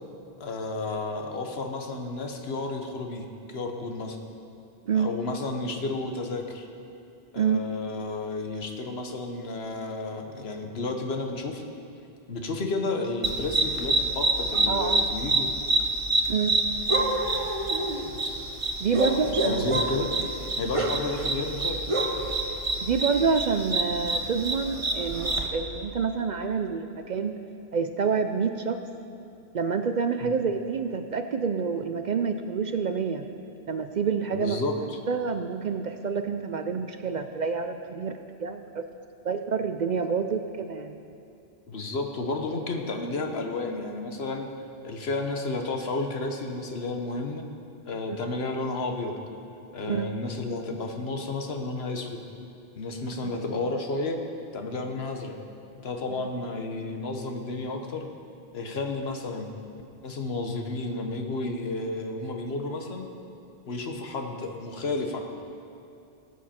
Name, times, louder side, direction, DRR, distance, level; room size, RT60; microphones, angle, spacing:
voice 1, 0.4-4.2 4.9-6.7 7.3-11.6 12.3-15.5 19.0-19.2 19.4-20.1 20.6-21.8 30.2-30.4 34.3-35.0 41.7-44.5 44.8-47.4 47.8-49.1 49.7-52.2 52.8-54.2 54.5-55.4 55.8-58.1 58.5-59.5 60.0-63.1 63.7-65.2, left 2 dB, 75° left, 4 dB, 1.3 m, -32 dB
sound 1, 13.2-25.5, right 2 dB, 35° right, 1.0 m, -27 dB
voice 2, 14.7-15.1 16.3-16.6 18.8-19.7 22.8-27.3 27.7-28.8 29.5-33.3 33.7-34.6 35.1-38.9 39.2-41.0 48.1-48.2 49.9-50.1 53.2-53.3, right 5 dB, 55° right, 7 dB, 0.6 m, -27 dB
18.5 x 8.4 x 4.3 m, 2.6 s
omnidirectional pair, 1.1 m